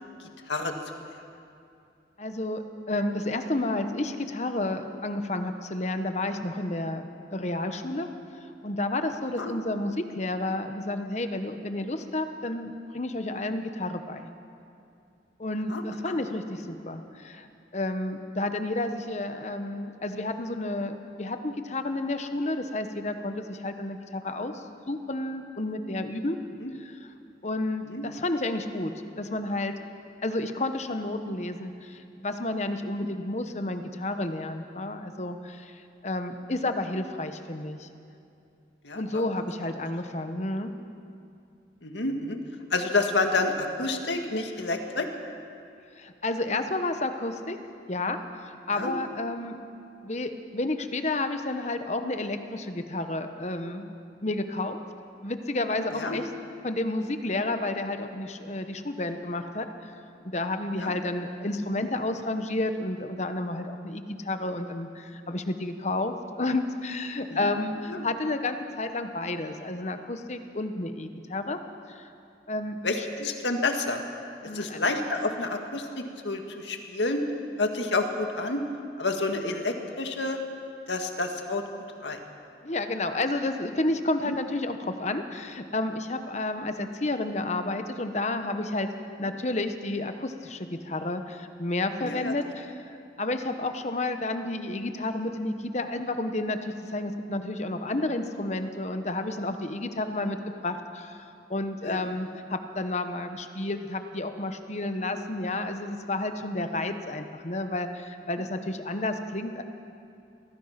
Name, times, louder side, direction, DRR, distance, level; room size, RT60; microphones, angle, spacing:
voice 1, 2.2-8.1 8.6-14.3 15.4-17.5 17.7-26.4 26.8-27.1 27.4-29.7 30.2-37.9 38.9-40.7 46.0-47.6 47.9-49.6 50.0-53.9 54.2-54.8 55.2-56.3 56.6-59.7 60.2-71.6 71.9-72.1 72.5-73.1 74.4-74.8 82.6-88.9 89.2-100.4 100.6-109.6, left 2 dB, 40° left, 8 dB, 1.1 m, -31 dB
voice 2, 15.7-16.2 26.6-26.7 27.9-28.0 38.8-39.2 41.8-42.4 42.7-45.1 48.7-48.9 55.9-56.2 60.8-60.9 67.3-67.5 67.9-68.1 72.8-74.0 74.5-77.2 77.6-78.6 79.0-80.4 80.9-81.6 82.0-82.2 84.3-84.4 86.5-86.7 92.0-92.3 101.8-102.1, left 3 dB, 80° left, 4 dB, 1.9 m, -29 dB
24.0 x 18.0 x 5.9 m, 2.6 s
head